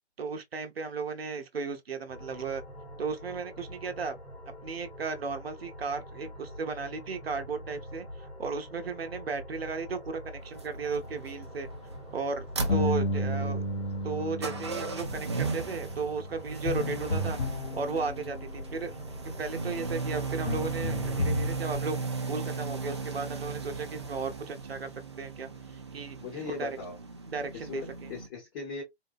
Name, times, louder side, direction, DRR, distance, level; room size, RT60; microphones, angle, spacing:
voice 1, 0.2-2.6 3.0-4.2 4.6-11.7 12.1-13.6 14.0-17.4 17.7-18.9 19.4-22.0 22.3-24.9 25.2-25.5 25.9-26.2 26.6-26.8 27.3-28.1, right 4 dB, 65° right, 0.8 m, -35 dB
sound 1, 2.1-21.9, equal, 85° left, 2.3 m, -45 dB
sound 2, 10.4-28.3, right 4 dB, 25° right, 0.4 m, -37 dB
sound 3, 12.7-18.6 19.8-20.0 20.5-21.5, left 1 dB, 65° left, 0.7 m, -32 dB
voice 2, 13.1-13.6 18.8-18.9 26.2-27.0 27.5-28.8, left 5 dB, 20° left, 0.7 m, -40 dB
3.8 x 2.1 x 2.4 m
figure-of-eight pair, 135°, 33 cm